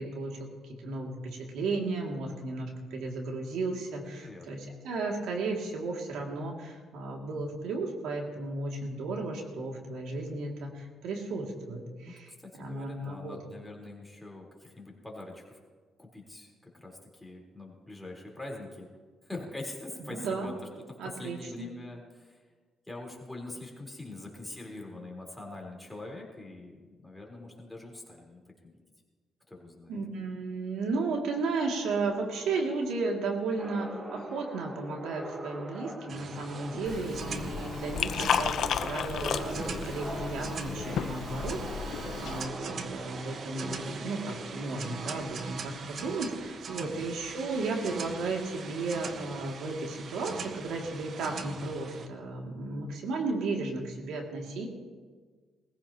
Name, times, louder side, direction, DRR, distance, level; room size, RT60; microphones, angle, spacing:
voice 1, 0.0-13.4 20.0-20.5 21.0-21.7 29.9-54.7, right 3 dB, 85° right, 0 dB, 2.4 m, -34 dB
voice 2, 4.2-4.6 12.0-12.1 12.4-15.6 16.0-18.9 19.2-20.5 20.9-22.4 22.9-28.8 29.5-30.0 36.7-37.0 46.8-47.0, left 2 dB, 5° left, -1 dB, 3.9 m, -44 dB
sound 1, 33.6-45.2, right 1 dB, 25° right, 2.1 m, -42 dB
sound 2, 36.1-52.1, right 5 dB, 55° right, 0.9 m, -42 dB
Liquid, 36.8-42.4, left 8 dB, 70° left, 0.7 m, -33 dB
21.5 x 15.0 x 2.9 m, 1.5 s
cardioid pair, 90°, 0 cm